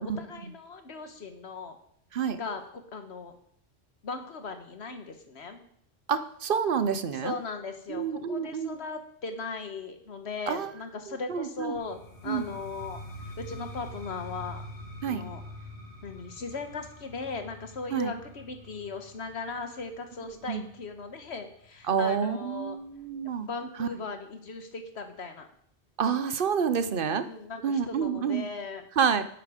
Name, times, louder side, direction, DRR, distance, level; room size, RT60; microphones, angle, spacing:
voice 1, 0.0-1.8 2.3-3.3 4.0-5.7 7.1-13.0 13.4-14.6 15.1-15.4 16.0-22.8 23.4-25.5 27.2-28.8, left 4 dB, 80° left, 7 dB, 1.5 m, -38 dB
voice 2, 6.1-7.3 7.9-8.7 10.5-10.7 11.3-11.7 12.3-12.5 15.0-15.2 17.9-18.1 20.5-20.6 21.9-23.5 23.8-23.9 26.0-27.2 27.6-28.5 29.0-29.2, right 7 dB, 60° right, 12 dB, 0.8 m, -28 dB
sound 1, 11.8-21.5, left 1 dB, 55° left, 2.2 m, -45 dB
10.5 x 8.7 x 5.0 m, 0.69 s
omnidirectional pair, 1.1 m